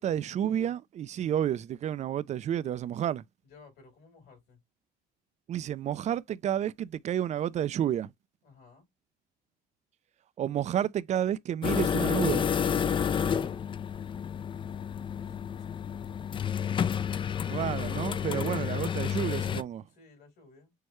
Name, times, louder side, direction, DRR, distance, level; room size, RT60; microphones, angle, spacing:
voice 1, 0.0-3.2 5.5-8.1 10.4-12.5 17.5-19.8, right 10 dB, 45° right, 0.4 m, -30 dB
voice 2, 3.4-4.6 8.4-8.9 14.9-17.2 19.9-20.7, left 4 dB, 70° left, 3.9 m, -57 dB
sound 1, 11.6-19.6, left 8 dB, 30° left, 0.4 m, -30 dB
6.5 x 2.2 x 3.0 m
cardioid pair, 110°, 17 cm